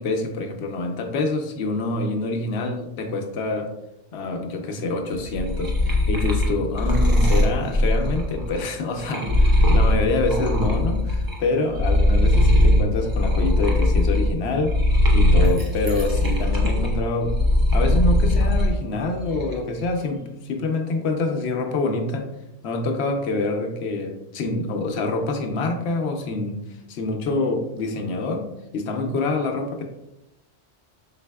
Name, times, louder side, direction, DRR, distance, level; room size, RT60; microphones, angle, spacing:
voice 1, 0.0-3.7 4.1-14.8 15.1-17.4 17.7-22.3 22.6-26.6 26.9-29.8, left 2 dB, 75° left, 4 dB, 0.9 m, -26 dB
sound 1, 5.1-11.4 11.7-18.7 19.1-19.8, left 1 dB, 25° right, 0.6 m, -20 dB
4.1 x 4.0 x 2.2 m, 0.90 s
omnidirectional pair, 1.1 m